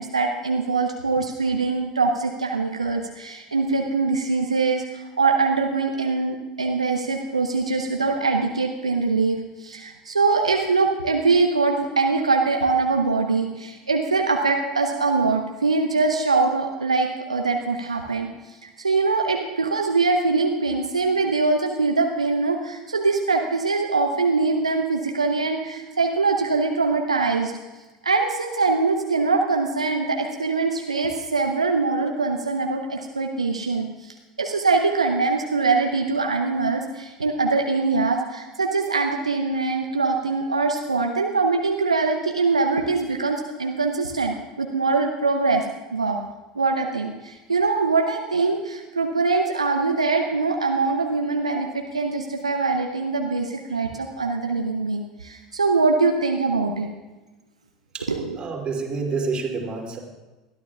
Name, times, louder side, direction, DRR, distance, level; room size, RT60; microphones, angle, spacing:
voice 1, 0.0-18.3 18.6-27.5 28.0-45.6 45.9-46.2 46.6-56.9 58.1-58.4, right 4 dB, 85° right, 2 dB, 0.8 m, -23 dB
voice 2, 57.9-60.0, right 4 dB, 30° right, 0 dB, 2.7 m, -28 dB
21.0 x 13.5 x 2.4 m, 1.1 s
figure-of-eight pair, 75°, 3 cm